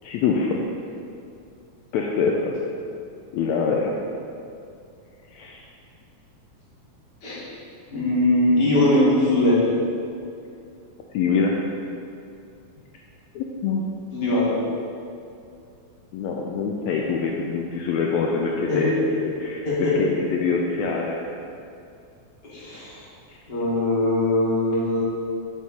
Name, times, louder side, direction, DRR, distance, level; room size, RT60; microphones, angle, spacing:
voice 1, 0.0-0.6 1.9-2.5 3.3-3.9 5.3-5.6 11.1-11.6 13.4-13.8 16.1-19.7 20.0-21.2 23.3-23.4, left 5 dB, 80° left, -1 dB, 1.7 m, -24 dB
voice 2, 7.9-9.6 14.1-14.6 18.7-19.0 19.7-20.0 22.4-23.0 23.5-25.0, left 1 dB, 25° left, -8 dB, 1.8 m, -21 dB
7.5 x 6.3 x 4.2 m, 2.5 s
omnidirectional pair, 3.5 m